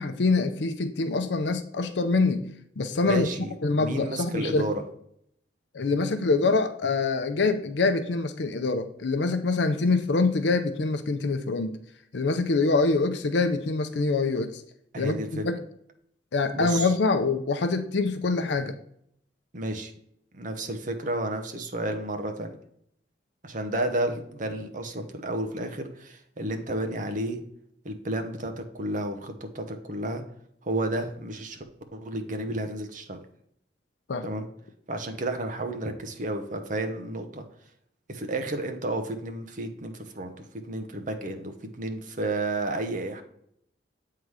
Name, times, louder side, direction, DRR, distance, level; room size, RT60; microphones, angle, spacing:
voice 1, 0.0-2.5 2.8-3.3 3.6-4.7 5.7-11.8 12.1-14.6 15.0-15.6 16.3-18.7 34.1-34.2, left 3 dB, 70° left, 8 dB, 0.6 m, -25 dB
voice 2, 3.0-4.8 14.9-15.4 16.5-16.9 19.5-19.9 20.3-22.5 23.4-27.4 27.8-30.2 30.6-31.6 31.9-33.2 34.2-34.5 34.9-37.4 38.1-43.2, right 1 dB, 45° right, 6 dB, 0.9 m, -32 dB
8.1 x 3.8 x 4.7 m, 0.71 s
head